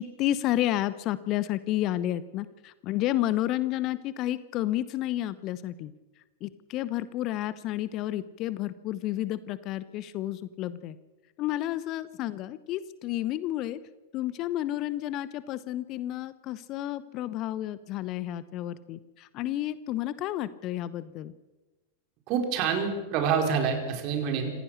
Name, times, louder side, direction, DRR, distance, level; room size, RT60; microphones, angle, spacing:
voice 1, 0.0-5.9 6.4-11.0 11.4-13.8 14.1-21.3, left 14 dB, 40° left, 16 dB, 0.9 m, -31 dB
voice 2, 22.3-24.5, right 6 dB, 40° right, 3 dB, 5.0 m, -27 dB
26.5 x 15.5 x 6.7 m, 1.1 s
figure-of-eight pair, 90°, 0 cm